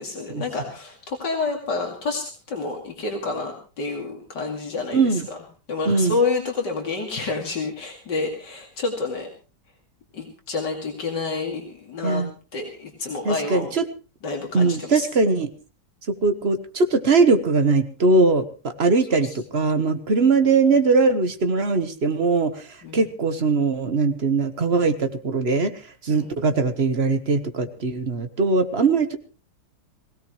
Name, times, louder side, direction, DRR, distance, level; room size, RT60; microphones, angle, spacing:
voice 1, 0.0-5.4 5.7-9.3 10.1-12.3 12.5-13.7 14.2-15.1 19.2-19.3 22.8-23.0 26.1-26.3, left 3 dB, 80° left, 1 dB, 3.0 m, -29 dB
voice 2, 4.9-5.3 5.9-6.2 12.0-12.3 13.2-13.8 14.5-15.5 16.1-29.2, right 4 dB, 40° right, 9 dB, 1.4 m, -21 dB
22.0 x 17.0 x 3.2 m, 0.34 s
omnidirectional pair, 1.8 m